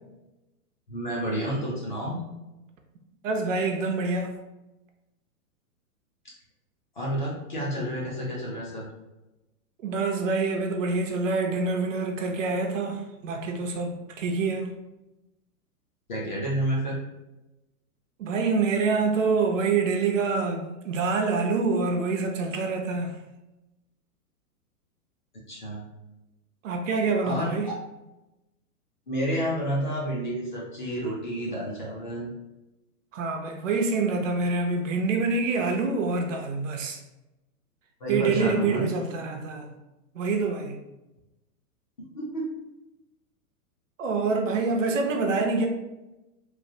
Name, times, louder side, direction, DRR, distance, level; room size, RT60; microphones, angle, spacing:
voice 1, 0.9-2.1 6.2-6.3 7.0-8.9 16.1-17.0 25.5-25.8 27.2-27.5 29.1-32.3 38.0-38.9 42.1-42.5, equal, 30° left, -4 dB, 0.4 m, -30 dB
voice 2, 3.2-4.3 9.8-14.7 18.2-23.2 26.6-27.7 33.1-37.0 38.1-39.7 40.1-40.8 44.0-45.7, right 4 dB, 55° right, 3 dB, 0.5 m, -26 dB
3.1 x 2.3 x 2.6 m, 0.98 s
hypercardioid pair, 165°, 47 cm